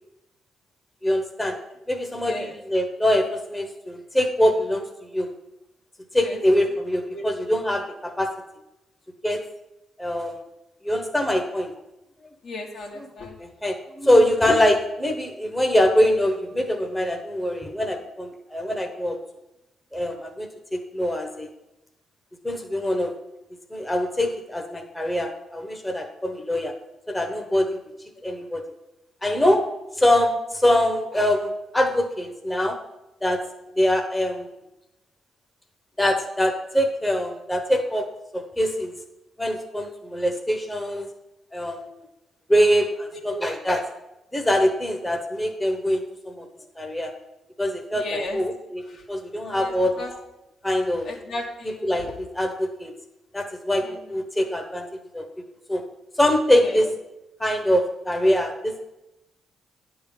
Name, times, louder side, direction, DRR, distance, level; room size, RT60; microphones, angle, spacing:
voice 1, 1.0-1.6 1.9-5.3 6.1-8.3 9.2-9.4 10.0-10.4 10.8-11.7 13.0-13.1 13.6-19.2 19.9-21.5 22.4-23.1 23.7-26.7 27.1-27.8 28.2-28.6 29.2-29.6 30.0-32.8 33.2-33.4 33.8-34.5 36.0-38.1 38.3-39.0 39.4-41.1 41.5-41.9 42.5-43.8 44.3-46.5 46.8-47.1 47.6-48.8 49.1-50.0 50.6-51.1 51.6-52.9 53.3-54.9 55.1-55.2 55.7-55.8 56.2-56.9 57.4-58.8, left 1 dB, 10° left, 4 dB, 1.0 m, -23 dB
voice 2, 2.2-2.5 6.2-6.4 7.1-7.2 12.4-13.4 43.1-43.4 47.9-48.4 48.9-49.0 49.5-50.2 51.0-52.1 53.8-54.0 56.6-56.9, left 1 dB, 65° left, 0 dB, 1.7 m, -35 dB
10.0 x 3.9 x 7.2 m, 0.94 s
cardioid pair, 90°, 0 cm